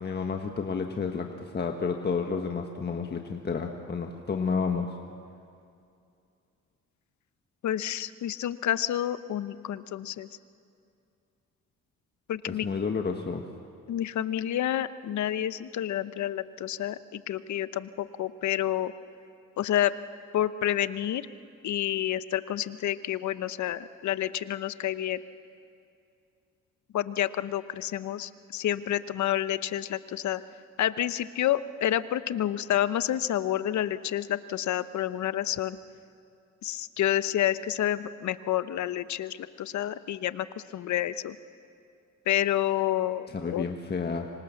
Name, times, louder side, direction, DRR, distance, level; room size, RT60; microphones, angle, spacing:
voice 1, 0.0-5.0 12.5-13.4 43.3-44.3, left 5 dB, 35° left, 3 dB, 1.6 m, -31 dB
voice 2, 7.6-10.3 12.3-12.7 13.9-18.9 19.6-19.9 20.3-21.2 21.6-25.2 26.9-30.4 30.8-35.8 36.6-40.5 40.7-41.4 42.3-43.7, left 12 dB, 70° left, 14 dB, 0.9 m, -29 dB
25.5 x 25.5 x 7.2 m, 2.5 s
cardioid pair, 90°, 30 cm